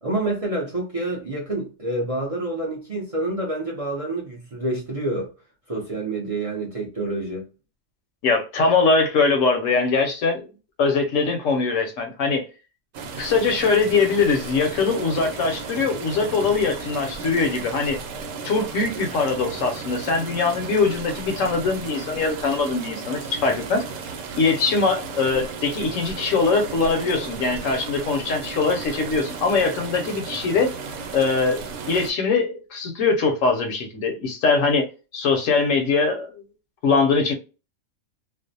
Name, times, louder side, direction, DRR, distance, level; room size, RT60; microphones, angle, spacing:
voice 1, 0.0-5.3 5.7-7.4, right 2 dB, 40° right, 0.5 m, -27 dB
voice 2, 8.2-10.4 10.8-12.5 13.2-18.0 18.4-23.9 24.4-30.7 31.1-36.4 36.8-37.3, left 4 dB, 70° left, 0.9 m, -22 dB
sound 1, 12.9-32.1, right 5 dB, 80° right, 1.0 m, -34 dB
2.5 x 2.1 x 2.6 m
omnidirectional pair, 1.5 m